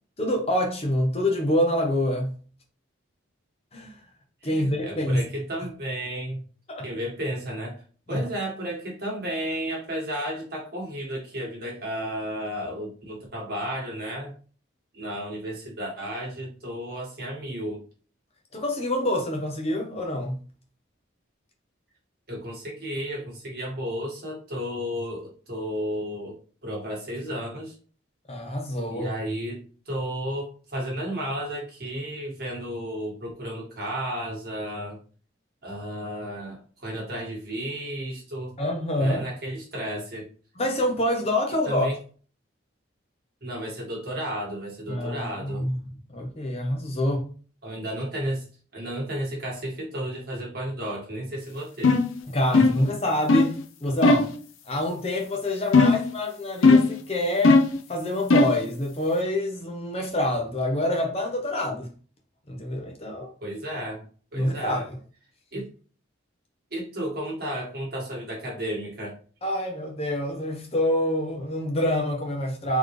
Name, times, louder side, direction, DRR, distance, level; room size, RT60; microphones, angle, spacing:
voice 1, 0.2-2.3 3.7-4.0 4.4-5.2 6.7-6.9 8.1-8.3 18.5-20.4 28.3-29.1 38.6-39.2 40.6-41.9 44.9-47.3 52.3-54.3 54.7-57.6 57.9-61.9 62.5-63.3 64.3-65.0 69.4-72.8, left 1 dB, 30° left, 0.8 m, -26 dB
voice 2, 4.4-6.4 6.8-7.8 8.1-14.3 14.9-17.8 22.3-26.4 26.6-27.7 28.9-35.0 35.6-38.5 39.0-40.3 41.6-42.0 43.4-45.7 47.6-48.5 48.7-52.0 52.5-52.6 55.8-55.9 63.4-64.1 64.3-64.8 65.5-65.7 66.7-69.2, equal, 50° right, 1.7 m, -33 dB
sound 1, 51.8-52.1 52.5-52.9 53.3-53.5 54.0-54.3 55.7-56.1 56.6-57.0 57.4-57.8 58.3-58.6, left 3 dB, 90° left, 0.6 m, -18 dB
4.1 x 3.1 x 3.2 m
head